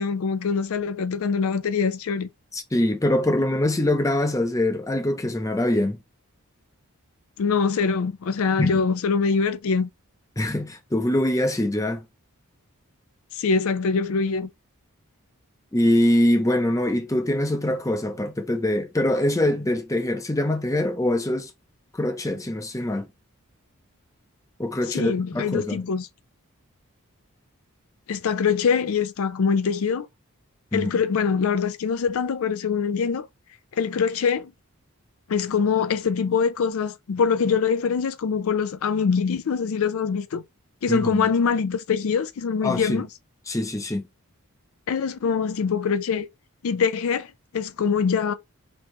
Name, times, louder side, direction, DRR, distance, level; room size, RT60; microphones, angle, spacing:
voice 1, 0.0-2.3 7.4-9.9 13.3-14.5 24.9-26.1 28.1-30.1 30.7-33.3 33.7-34.5 35.3-40.4 40.8-43.1 44.9-46.3 46.6-48.3, left 5 dB, 70° left, 0.4 m, -24 dB
voice 2, 2.5-6.0 8.6-8.8 10.4-12.0 15.7-21.5 21.9-23.1 24.6-25.8 30.7-30.9 40.9-41.3 42.6-43.0 43.5-44.1, left 1 dB, 15° left, 0.6 m, -23 dB
5.3 x 3.0 x 3.1 m
head